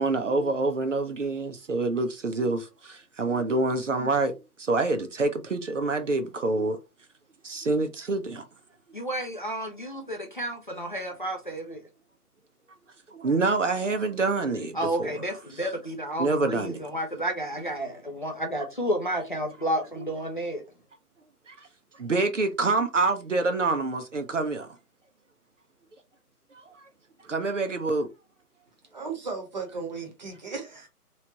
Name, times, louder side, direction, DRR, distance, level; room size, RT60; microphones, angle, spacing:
voice 1, 0.0-4.3 4.6-6.8 7.4-8.5 13.1-15.2 16.2-16.8 21.5-21.7 21.9-24.8 26.5-26.8 27.2-28.1, right 3 dB, 50° right, 0.7 m, -27 dB
voice 2, 8.9-11.8 14.7-20.6, right 1 dB, 35° left, 0.5 m, -31 dB
voice 3, 28.9-30.8, right 4 dB, 30° right, 1.0 m, -35 dB
3.2 x 3.0 x 2.8 m
figure-of-eight pair, 145°, 46 cm